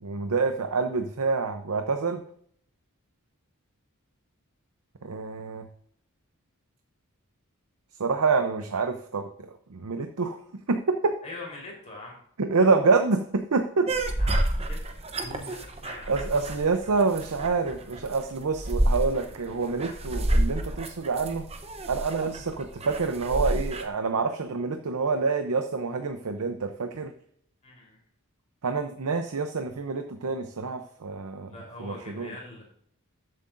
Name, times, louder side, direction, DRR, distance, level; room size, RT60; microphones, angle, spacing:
voice 1, 0.0-2.2 5.0-5.7 8.0-10.4 10.7-11.2 12.4-13.9 16.1-21.5 21.9-27.1 28.6-31.5 31.8-32.3, right 4 dB, 85° right, 7 dB, 0.7 m, -27 dB
voice 2, 11.2-12.2 12.7-12.8 14.2-14.8 15.2-16.1 27.6-28.0 31.5-32.6, left 2 dB, 30° left, -1 dB, 3.7 m, -42 dB
Dog whining, 13.9-23.8, right 1 dB, 30° right, 0.8 m, -29 dB
13.0 x 7.6 x 2.6 m, 0.63 s
head